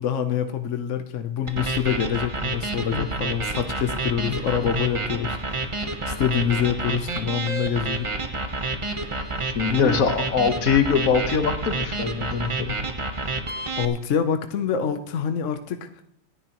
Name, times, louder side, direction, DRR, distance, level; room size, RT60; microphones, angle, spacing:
voice 1, 0.0-5.7 6.1-8.1 9.7-10.0 13.5-15.9, left 8 dB, 65° left, 7 dB, 1.1 m, -26 dB
sound 1, 1.5-13.8, right 2 dB, 25° right, 0.9 m, -29 dB
voice 2, 4.3-4.7 5.2-5.3 7.2-7.3 9.4-12.7, left 6 dB, 85° left, 7 dB, 1.6 m, -23 dB
26.0 x 9.9 x 3.0 m, 0.77 s
omnidirectional pair, 1.4 m